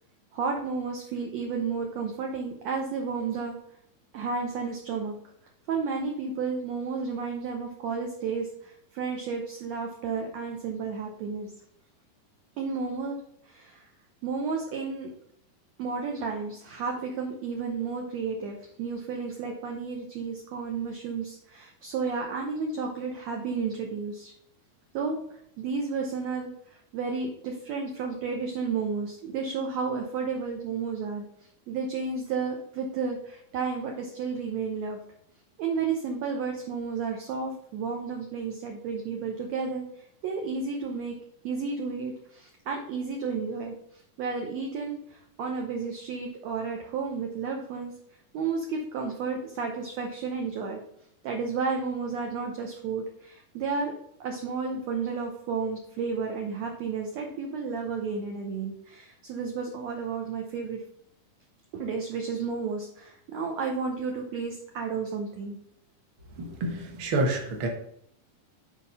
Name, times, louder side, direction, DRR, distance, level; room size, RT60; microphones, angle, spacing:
voice 1, 0.3-3.6 4.1-5.1 5.7-11.5 12.6-13.2 13.5-13.9 14.2-15.1 15.8-24.3 24.9-25.2 25.6-31.3 31.7-35.0 35.6-41.2 41.4-47.9 48.3-50.8 51.2-53.9 54.2-60.8 61.7-65.6, right 5 dB, 70° right, 2 dB, 1.7 m, -32 dB
voice 2, 66.4-67.7, right 2 dB, 50° right, 2 dB, 1.7 m, -28 dB
7.2 x 4.5 x 5.5 m, 0.71 s
omnidirectional pair, 4.0 m